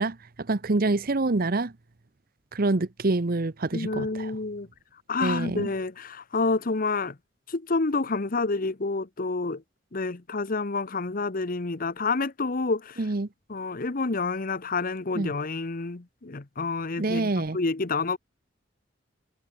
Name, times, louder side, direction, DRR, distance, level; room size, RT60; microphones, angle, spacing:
voice 1, 0.0-1.7 2.5-4.3 5.2-5.7 13.0-13.3 15.1-15.3 17.0-17.6, right 2 dB, 50° right, 0.9 m, -26 dB
voice 2, 3.7-4.7 5.1-7.2 7.5-9.6 9.9-13.0 13.5-18.2, left 3 dB, 50° left, 1.0 m, -28 dB
head